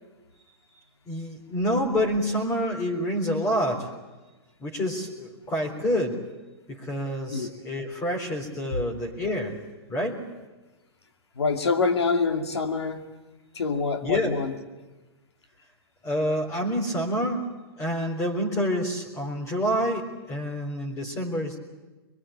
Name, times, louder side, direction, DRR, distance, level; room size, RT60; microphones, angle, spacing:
voice 1, 1.1-3.9 4.6-6.2 6.7-9.6 9.9-10.2 14.0-14.4 16.0-17.4 17.8-21.6, equal, 20° left, 0 dB, 3.8 m, -27 dB
voice 2, 11.4-13.1 13.5-14.5, left 4 dB, 90° left, 5 dB, 2.5 m, -25 dB
23.0 x 23.0 x 8.8 m, 1.2 s
hypercardioid pair, 130°, 14 cm